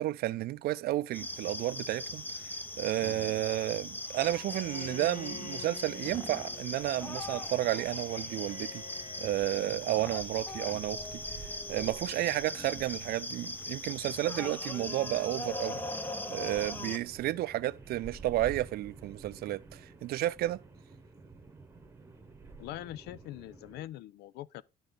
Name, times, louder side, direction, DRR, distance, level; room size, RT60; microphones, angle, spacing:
voice 1, 0.0-2.3 2.8-8.8 9.2-15.8 16.3-20.6, right 15 dB, 65° right, 0.5 m, -32 dB
sound 1, 1.1-17.0, left 1 dB, 10° left, 0.7 m, -39 dB
sound 2, 4.2-23.9, right 3 dB, 15° right, 1.1 m, -52 dB
Bowed string instrument, 4.3-9.9, left 7 dB, 50° left, 1.7 m, -49 dB
voice 2, 22.6-24.6, left 14 dB, 75° left, 0.4 m, -43 dB
11.5 x 4.0 x 3.9 m
cardioid pair, 110°, 17 cm